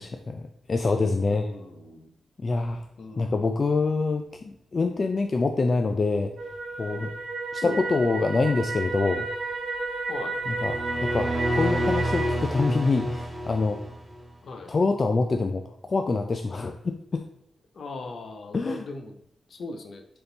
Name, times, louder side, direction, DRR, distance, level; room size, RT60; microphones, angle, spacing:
voice 1, 0.0-1.5 2.4-2.9 3.2-6.3 6.8-7.1 7.5-9.3 10.5-13.8 14.7-17.2 18.5-18.8, left 3 dB, 40° left, 5 dB, 0.4 m, -26 dB
voice 2, 1.3-2.1 3.0-3.6 7.6-7.8 10.1-10.4 14.4-14.7 17.7-19.2 19.5-20.0, left 3 dB, 60° left, 5 dB, 0.8 m, -38 dB
sound 1, 6.4-12.3, right 3 dB, 70° right, 1.1 m, -32 dB
sound 2, 10.4-14.3, equal, 25° right, 1.7 m, -29 dB
6.9 x 3.7 x 3.9 m, 0.76 s
wide cardioid pair, 130°, 0 cm